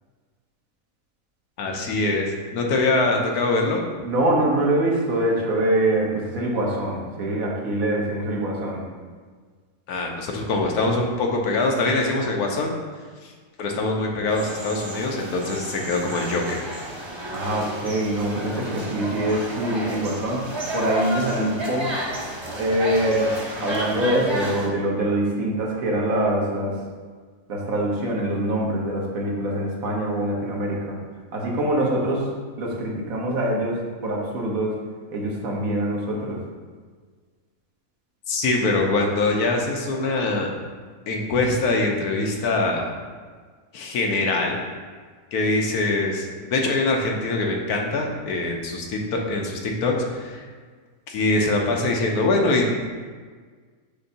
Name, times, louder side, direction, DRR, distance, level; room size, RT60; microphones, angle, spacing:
voice 1, 1.6-3.8 9.9-12.7 13.2-13.3 13.6-16.6 38.3-40.5 41.1-42.8 43.7-44.6 45.3-50.4 51.1-52.7, left 2 dB, 90° left, 1 dB, 1.3 m, -23 dB
voice 2, 4.0-8.9 17.3-20.5 20.7-22.0 22.6-26.8 27.5-30.9 31.3-32.3 32.6-34.8 35.1-36.4, right 1 dB, 70° right, -2 dB, 1.4 m, -24 dB
sound 1, 14.3-24.7, right 1 dB, 25° right, 0.6 m, -31 dB
6.7 x 2.6 x 5.4 m, 1.6 s
omnidirectional pair, 1.5 m